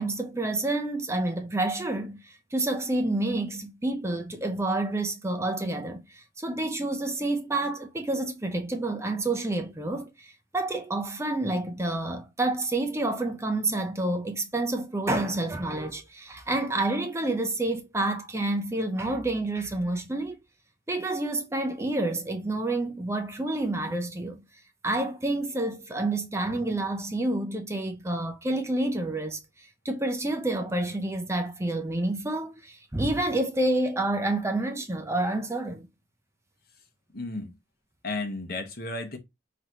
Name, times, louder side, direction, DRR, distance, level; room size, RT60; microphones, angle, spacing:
voice 1, 0.0-20.4 20.9-24.4 24.8-35.9, right 2 dB, 15° right, 0.6 m, -29 dB
voice 2, 37.1-37.5 38.0-39.2, left 2 dB, 55° left, 1.1 m, -33 dB
5.6 x 2.9 x 2.9 m
head